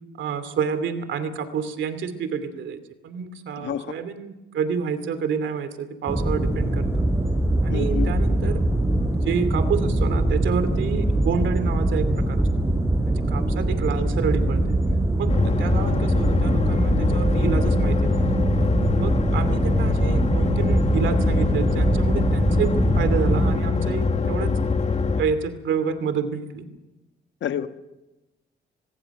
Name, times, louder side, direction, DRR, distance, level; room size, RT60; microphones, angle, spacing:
voice 1, 0.2-7.1 7.6-8.6 9.2-12.5 13.1-14.7 15.2-18.2 19.0-24.6 25.2-26.7, right 6 dB, 70° right, 11 dB, 2.6 m, -28 dB
voice 2, 3.6-3.9 7.7-8.1 27.4-27.7, left 9 dB, 65° left, 9 dB, 1.4 m, -28 dB
sound 1, 6.1-23.5, right 1 dB, 10° right, 4.1 m, -23 dB
sound 2, 15.3-25.2, left 4 dB, 35° left, 1.8 m, -24 dB
25.5 x 20.5 x 6.0 m, 1.0 s
cardioid pair, 90°, 20 cm